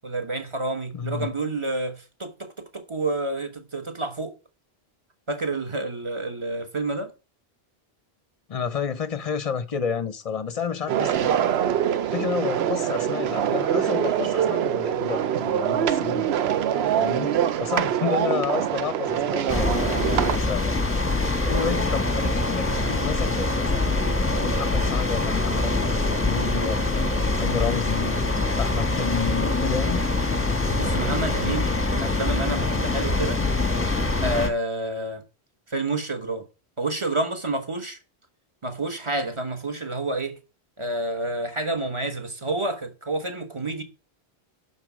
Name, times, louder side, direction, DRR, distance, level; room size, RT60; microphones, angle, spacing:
voice 1, 0.0-4.3 5.3-7.1 30.7-33.4 34.2-35.2 35.7-36.5 36.8-38.0 38.6-40.4 40.8-43.8, right 2 dB, 30° right, 1.2 m, -29 dB
voice 2, 0.9-1.3 8.5-11.4 12.1-16.3 16.9-20.8 21.4-24.0 24.4-28.1 28.6-30.0, left 6 dB, 40° left, 0.6 m, -30 dB
sound 1, 10.9-20.4, right 9 dB, 75° right, 0.9 m, -24 dB
sound 2, 19.5-34.5, left 2 dB, 15° left, 1.0 m, -24 dB
11.5 x 4.1 x 6.1 m
omnidirectional pair, 1.1 m